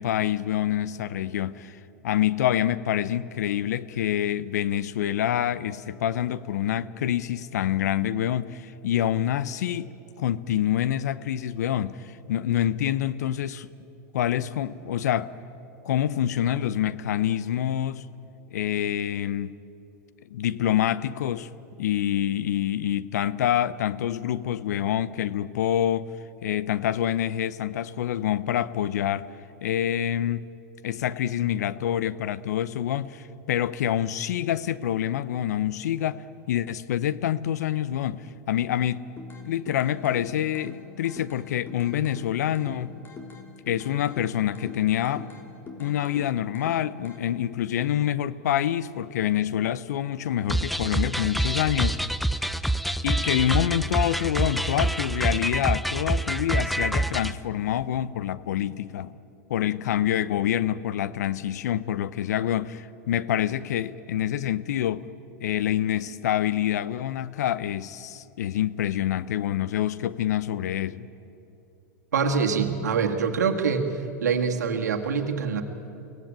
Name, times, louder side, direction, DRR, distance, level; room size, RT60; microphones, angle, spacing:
voice 1, 0.0-1.8 2.0-13.7 14.1-15.3 15.9-18.1 18.5-19.6 20.3-21.5 21.8-26.1 26.4-29.3 29.6-30.5 30.8-39.0 39.4-42.9 43.7-45.3 45.8-52.0 53.0-59.2 59.5-65.1 65.4-71.1, left 11 dB, 75° left, 17 dB, 0.8 m, -26 dB
sound 1, 39.2-47.2, left 4 dB, 25° left, 3.5 m, -44 dB
sound 2, 50.5-57.3, right 1 dB, ahead, 0.6 m, -26 dB
voice 2, 72.1-73.9 74.2-75.6, right 6 dB, 85° right, 3 dB, 1.9 m, -24 dB
23.5 x 17.5 x 8.9 m, 2.9 s
hypercardioid pair, 100°, 9 cm